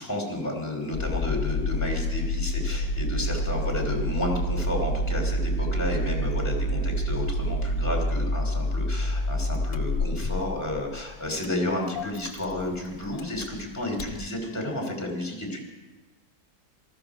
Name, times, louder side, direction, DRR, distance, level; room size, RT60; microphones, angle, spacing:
voice 1, 0.0-15.6, left 1 dB, 10° left, 1 dB, 2.8 m, -31 dB
Engine starting, 0.9-14.2, equal, 55° left, 1.2 m, -28 dB
19.5 x 13.5 x 4.9 m, 1.2 s
omnidirectional pair, 1.7 m